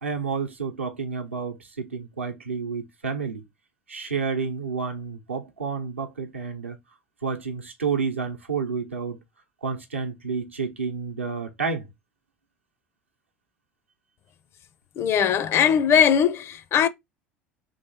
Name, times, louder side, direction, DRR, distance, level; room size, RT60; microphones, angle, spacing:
voice 1, 0.0-3.4 3.9-6.8 7.2-9.2 9.6-11.9, right 5 dB, 85° right, 0.7 m, -30 dB
voice 2, 15.0-16.9, left 8 dB, 40° left, 0.5 m, -20 dB
3.1 x 2.9 x 4.2 m
figure-of-eight pair, 70°, 7 cm